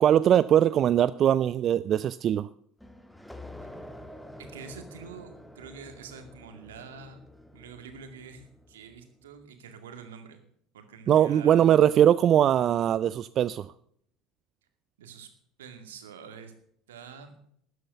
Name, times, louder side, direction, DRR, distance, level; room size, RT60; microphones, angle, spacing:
voice 1, 0.0-2.5 11.1-13.7, right 10 dB, 45° right, 16 dB, 0.4 m, -21 dB
sound 1, 2.8-9.2, left 1 dB, 5° left, 1.5 m, -48 dB
voice 2, 4.4-7.2 7.5-10.4 10.7-11.9 15.0-15.3 15.6-16.5 16.9-17.4, right 6 dB, 80° right, 7 dB, 2.2 m, -46 dB
13.0 x 9.4 x 6.8 m, 0.65 s
hypercardioid pair, 70°, 0 cm